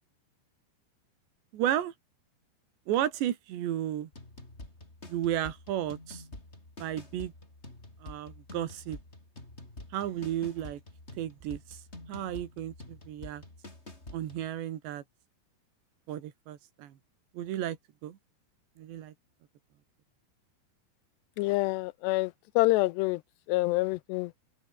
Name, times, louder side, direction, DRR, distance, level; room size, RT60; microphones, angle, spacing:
voice 1, 1.5-1.9 2.9-4.1 5.0-6.2 6.8-7.3 8.0-9.0 9.9-10.8 11.2-11.8 12.1-13.4 14.1-15.0 16.1-17.0 17.3-17.8 18.0-18.2 18.8-19.1, right 11 dB, 75° right, 4.2 m, -33 dB
sound 1, 4.1-14.5, left 2 dB, 15° left, 5.2 m, -48 dB
voice 2, 21.4-23.2 23.5-24.3, left 20 dB, 80° left, 2.7 m, -27 dB
open air
omnidirectional pair, 5.1 m